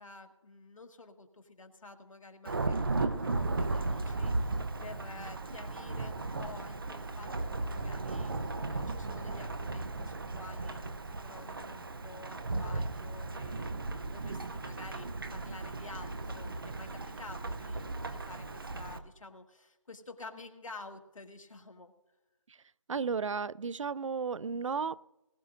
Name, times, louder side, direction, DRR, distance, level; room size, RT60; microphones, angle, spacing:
voice 1, 0.0-21.9, left 3 dB, 85° left, 1.7 m, -50 dB
Thunderstorm / Rain, 2.4-19.0, right 3 dB, 45° right, 0.7 m, -36 dB
voice 2, 22.9-25.1, right 5 dB, 75° right, 0.4 m, -34 dB
19.5 x 12.5 x 2.6 m
figure-of-eight pair, 175°, 16 cm